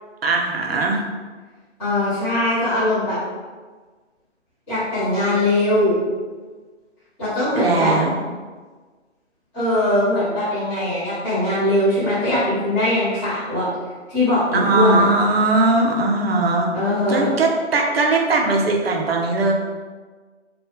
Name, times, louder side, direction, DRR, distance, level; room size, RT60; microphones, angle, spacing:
voice 1, 0.2-1.0 7.5-8.1 14.5-16.7 17.1-19.5, right 3 dB, 55° right, 1 dB, 0.7 m, -19 dB
voice 2, 1.8-3.2 4.7-6.0 7.2-7.9 9.5-13.7 14.1-15.1 16.7-17.3, left 1 dB, 5° left, -19 dB, 0.7 m, -20 dB
2.8 x 2.4 x 3.6 m, 1.4 s
hypercardioid pair, 160°, 36 cm